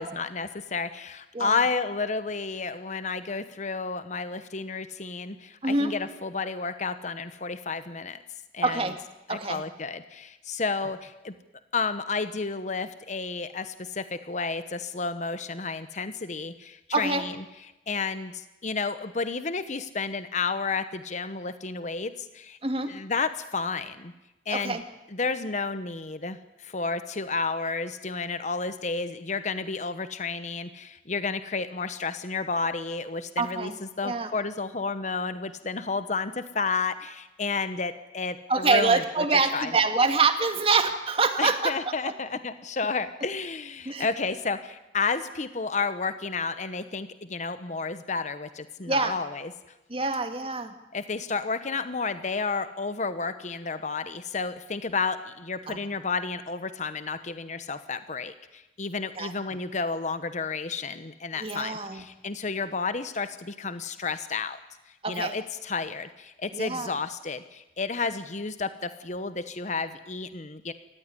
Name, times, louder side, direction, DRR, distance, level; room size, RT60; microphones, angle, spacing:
voice 1, 0.0-8.2 8.5-8.9 9.3-11.3 11.7-17.3 17.9-22.6 22.9-24.1 24.5-24.8 25.1-39.0 39.5-39.7 41.4-49.5 50.9-64.6 65.1-70.7, left 4 dB, 45° left, 11 dB, 1.0 m, -31 dB
voice 2, 5.6-5.9 8.6-8.9 9.3-9.6 16.9-17.2 22.6-22.9 24.5-24.8 33.4-33.8 34.0-34.3 38.5-41.7 43.9-44.1 48.9-49.1 49.9-50.7 55.7-55.8 59.2-59.3 61.4-62.0 65.0-65.3 66.5-67.0, right 3 dB, 35° right, 7 dB, 2.0 m, -25 dB
28.0 x 14.5 x 9.9 m, 0.97 s
head